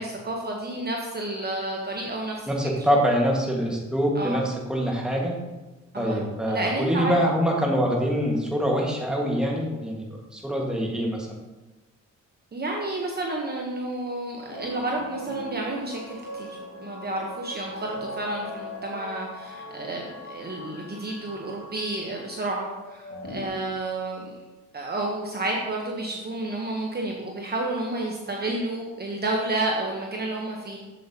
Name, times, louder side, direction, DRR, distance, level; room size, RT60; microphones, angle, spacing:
voice 1, 0.0-2.4 4.1-4.4 5.9-6.2 6.5-7.2 12.5-24.4 24.7-30.8, right 2 dB, 35° right, -1 dB, 1.1 m, -30 dB
voice 2, 2.5-5.4 6.0-11.4, equal, 5° right, -2 dB, 1.8 m, -25 dB
sound 1, 14.5-23.5, left 1 dB, 50° left, 1.7 m, -40 dB
7.5 x 7.4 x 2.9 m, 1.1 s
cardioid pair, 90°, 30 cm